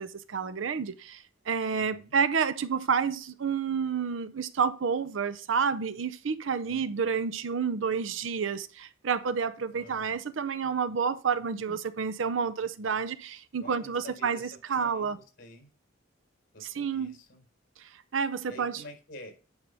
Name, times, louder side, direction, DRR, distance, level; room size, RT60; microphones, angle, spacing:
voice 1, 0.0-15.2 16.8-17.2 17.8-18.8, right 6 dB, 80° right, 0.6 m, -30 dB
voice 2, 1.7-2.1 6.6-6.9 9.7-10.2 13.6-15.7 16.5-17.4 18.5-19.3, left 1 dB, 55° left, 4.5 m, -48 dB
9.7 x 5.3 x 3.4 m
head